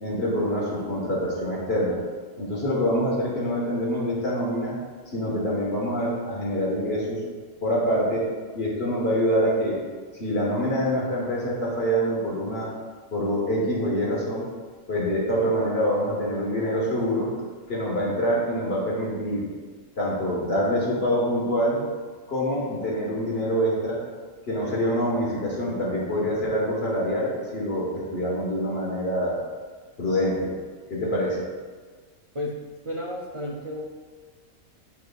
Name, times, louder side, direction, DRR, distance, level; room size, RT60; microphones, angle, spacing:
voice 1, 0.0-2.0 2.4-4.8 5.1-7.2 7.6-8.2 8.5-9.8 10.2-12.7 13.1-14.5 14.9-17.3 17.7-19.5 20.0-21.8 22.3-24.0 24.5-29.4 30.0-30.5 30.9-31.4, equal, 50° left, -4 dB, 1.6 m, -25 dB
voice 2, 32.8-33.8, left 1 dB, 45° right, -2 dB, 0.4 m, -32 dB
9.3 x 4.5 x 2.4 m, 1.5 s
omnidirectional pair, 1.4 m